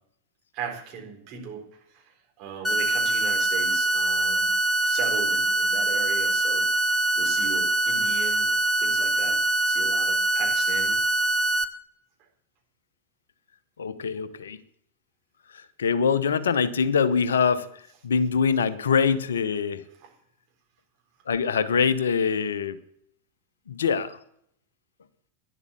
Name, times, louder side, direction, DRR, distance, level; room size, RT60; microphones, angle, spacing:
voice 1, 0.5-1.6 1.9-2.0 2.4-4.5 4.8-6.7 7.2-8.5 8.8-9.4 9.7-11.0, right 7 dB, 40° right, 1 dB, 4.0 m, -37 dB
sound 1, 2.6-11.6, right 2 dB, 5° left, 1.2 m, -24 dB
voice 2, 13.8-14.6 15.5-19.8 21.3-22.8 23.7-24.2, left 6 dB, 65° left, 14 dB, 0.9 m, -24 dB
12.5 x 11.0 x 7.0 m, 0.70 s
figure-of-eight pair, 90°, 0 cm